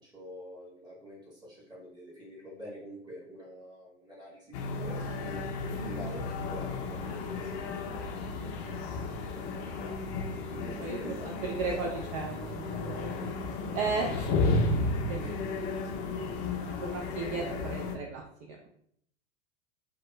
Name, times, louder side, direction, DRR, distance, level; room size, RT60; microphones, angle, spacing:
voice 1, 0.0-7.6 10.5-11.7 13.7-14.6 15.2-15.5 16.6-16.7, equal, 10° right, -5 dB, 1.5 m, -46 dB
sound 1, 4.5-18.0, left 3 dB, 45° left, 0.5 m, -33 dB
voice 2, 10.8-13.3 13.7-14.3 15.1-15.6 16.6-18.7, right 4 dB, 45° right, 0 dB, 0.5 m, -35 dB
2.9 x 2.2 x 3.1 m, 0.69 s
hypercardioid pair, 105°, 35 cm